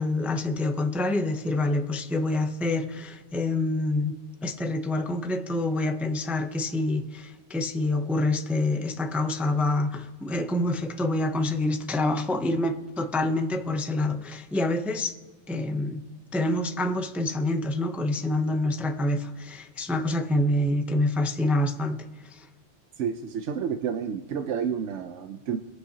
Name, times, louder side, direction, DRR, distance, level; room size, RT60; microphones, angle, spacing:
voice 1, 0.0-4.1 4.4-15.2 15.5-16.0 16.3-22.0 22.3-22.5, left 2 dB, ahead, 0.4 m, -27 dB
voice 2, 23.0-25.6, right 7 dB, 85° right, 1.0 m, -30 dB
21.0 x 8.0 x 2.8 m
omnidirectional pair, 1.2 m